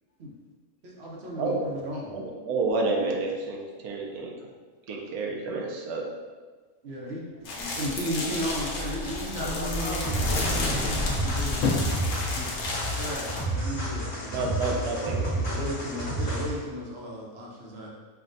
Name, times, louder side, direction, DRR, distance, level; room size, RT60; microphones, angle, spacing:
voice 1, 0.8-2.2 6.8-10.4 12.9-14.6 15.4-17.9, equal, 55° right, -3 dB, 0.9 m, -35 dB
voice 2, 1.3-1.7 2.1-4.3 4.9-6.1 14.3-15.3, right 3 dB, 80° right, 0 dB, 1.1 m, -29 dB
sound 1, 7.4-13.4, left 2 dB, 90° left, 1.2 m, -33 dB
Explosion, 7.9-12.4, left 1 dB, 5° right, 0.4 m, -34 dB
voice 3, 9.4-10.0 10.2-12.5 14.3-15.5, left 3 dB, 70° left, -2 dB, 0.9 m, -33 dB
sound 2, 10.0-16.6, right 1 dB, 50° left, 1.2 m, -31 dB
5.7 x 2.3 x 2.6 m, 1.4 s
omnidirectional pair, 1.5 m